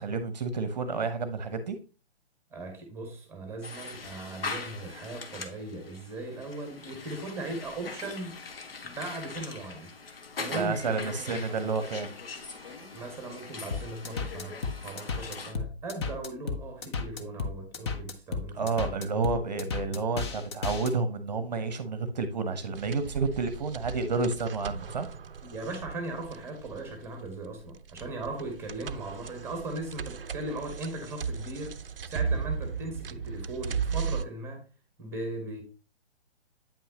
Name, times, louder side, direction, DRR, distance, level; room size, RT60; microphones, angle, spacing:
voice 1, 0.0-1.8 10.5-12.2 18.5-25.1, right 4 dB, 40° right, 10 dB, 0.9 m, -30 dB
voice 2, 2.5-8.4 8.8-9.9 10.4-11.6 12.9-19.1 25.4-31.8 32.1-34.6 35.0-35.6, right 2 dB, 5° right, 4 dB, 1.3 m, -38 dB
sound 1, 3.6-15.5, left 4 dB, 60° left, 1.3 m, -41 dB
sound 2, 13.7-20.9, left 4 dB, 25° left, 0.7 m, -34 dB
sound 3, 22.7-34.2, right 6 dB, 60° right, 0.5 m, -36 dB
8.8 x 5.6 x 2.9 m, 0.33 s
figure-of-eight pair, 130°, 33 cm